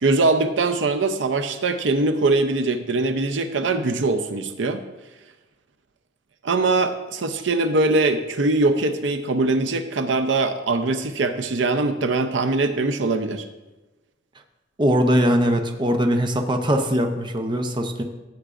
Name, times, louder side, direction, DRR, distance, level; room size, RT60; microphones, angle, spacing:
voice 1, 0.0-4.8 6.4-13.5, right 3 dB, 75° right, 8 dB, 0.6 m, -22 dB
voice 2, 14.8-18.0, equal, 25° right, 5 dB, 0.7 m, -21 dB
14.5 x 7.9 x 2.5 m, 1.1 s
head